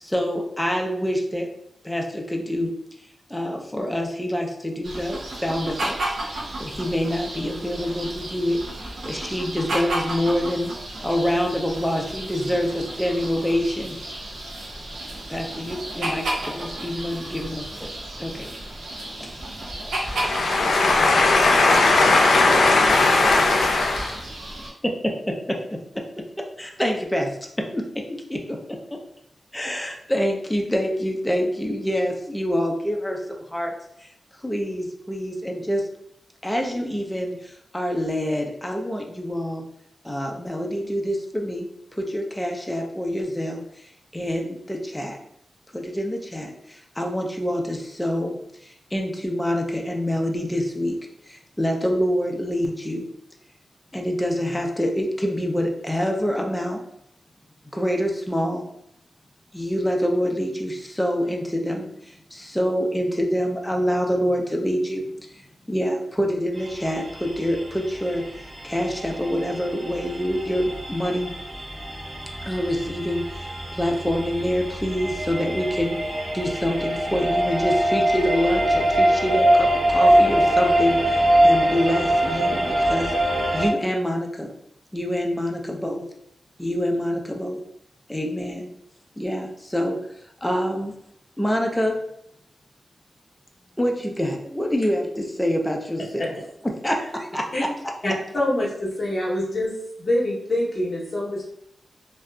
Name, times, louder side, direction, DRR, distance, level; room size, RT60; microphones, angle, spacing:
voice 1, 0.0-1.5 1.8-2.7 3.3-8.6 9.0-10.7 11.0-13.9 15.3-17.9 18.2-18.6 19.2-19.7 24.8-25.6 26.6-28.6 28.9-29.0 29.5-33.7 34.0-34.1 34.4-35.9 36.4-39.6 40.0-45.2 45.7-51.0 51.2-53.1 53.9-56.8 57.7-58.7 59.5-68.2 68.6-71.3 72.4-76.0 76.3-83.1 83.5-84.5 84.9-86.0 86.6-87.6 88.1-88.7 89.2-90.0 90.4-90.9 91.4-92.0 93.8-96.3 96.6-97.5, equal, 10° left, 1 dB, 0.4 m, -26 dB
sound 1, 4.8-24.7, right 1 dB, 80° right, 0.6 m, -33 dB
voice 2, 20.0-24.2, left 3 dB, 80° left, 1 dB, 0.4 m, -18 dB
sound 2, 66.6-83.7, right 1 dB, 40° right, 0.9 m, -23 dB
voice 3, 98.0-99.7 100.0-101.4, left 1 dB, 45° left, -5 dB, 0.7 m, -25 dB
2.6 x 2.3 x 2.2 m, 0.74 s
wide cardioid pair, 90°, 0 cm